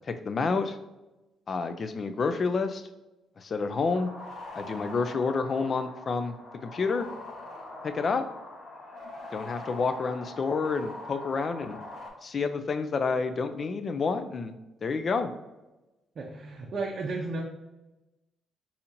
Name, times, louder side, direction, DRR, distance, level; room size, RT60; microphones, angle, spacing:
voice 1, 0.1-0.8 1.5-2.8 3.4-4.1 4.5-6.4 6.6-7.1 7.8-8.3 9.3-11.8 12.2-14.5 14.8-15.3, left 4 dB, 40° left, 9 dB, 0.3 m, -29 dB
sound 1, 3.9-12.1, left 2 dB, 55° left, 1.0 m, -43 dB
voice 2, 16.2-17.4, right 3 dB, 45° right, -2 dB, 0.5 m, -33 dB
4.2 x 2.7 x 2.5 m, 1.0 s
cardioid pair, 105°, 0 cm